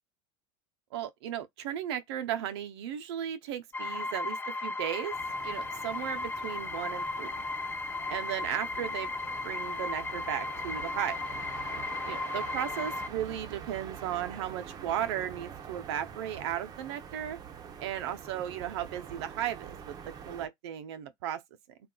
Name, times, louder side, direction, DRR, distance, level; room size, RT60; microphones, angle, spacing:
voice 1, 0.9-5.2 5.4-7.3 8.1-9.1 9.4-11.2 12.1-17.4 17.8-21.4, right 10 dB, 75° right, 0.6 m, -35 dB
sound 1, 3.7-13.1, left 3 dB, 15° left, 0.3 m, -35 dB
sound 2, 5.1-20.5, right 7 dB, 30° right, 0.7 m, -45 dB
2.3 x 2.3 x 3.7 m
supercardioid pair, 115°, 14 cm